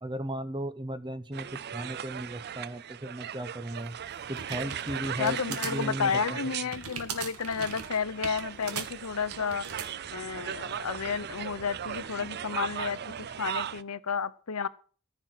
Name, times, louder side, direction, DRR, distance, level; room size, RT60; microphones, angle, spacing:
voice 1, 0.0-4.0 4.3-6.4, right 1 dB, 20° right, 0.8 m, -36 dB
sound 1, 1.3-13.8, right 9 dB, 50° right, 0.5 m, -38 dB
sound 2, 3.8-9.9, right 6 dB, 90° right, 2.1 m, -40 dB
voice 2, 5.2-9.7 10.1-13.0 13.4-14.7, left 6 dB, 80° left, 0.8 m, -31 dB
sound 3, 6.7-12.1, left 1 dB, 35° left, 1.8 m, -56 dB
14.5 x 6.2 x 7.6 m
head